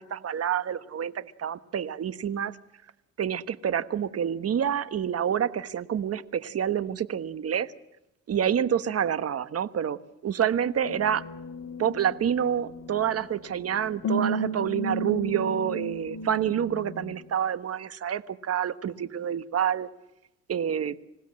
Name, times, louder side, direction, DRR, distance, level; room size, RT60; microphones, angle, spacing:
voice 1, 0.0-2.5 3.2-7.7 8.3-11.2 11.8-19.9 20.5-21.0, right 9 dB, 50° right, 13 dB, 1.3 m, -28 dB
sound 1, 10.8-17.1, right 1 dB, 55° left, 3.4 m, -34 dB
26.5 x 16.5 x 7.6 m, 0.91 s
cardioid pair, 90°, 30 cm